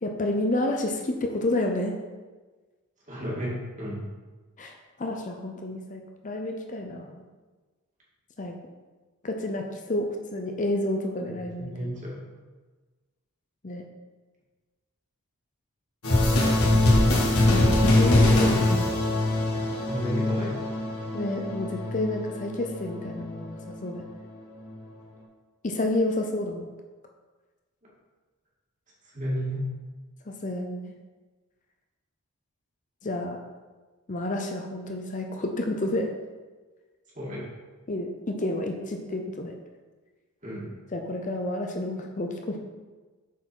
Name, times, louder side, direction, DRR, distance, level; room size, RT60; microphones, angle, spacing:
voice 1, 0.0-1.9 4.6-7.2 8.4-8.6 9.2-11.9 13.6-13.8 17.4-19.0 21.1-24.0 25.6-26.7 30.3-30.8 33.0-33.4 34.1-36.1 37.9-39.5 40.9-42.6, left 1 dB, 35° left, 3 dB, 0.6 m, -30 dB
voice 2, 3.1-4.0 11.2-12.2 16.3-17.1 19.9-20.8 29.0-29.6 37.1-37.5 40.4-40.7, equal, 35° right, -5 dB, 2.4 m, -34 dB
sound 1, 16.0-23.7, left 1 dB, 85° left, 2.0 m, -23 dB
7.0 x 4.7 x 6.2 m, 1.3 s
head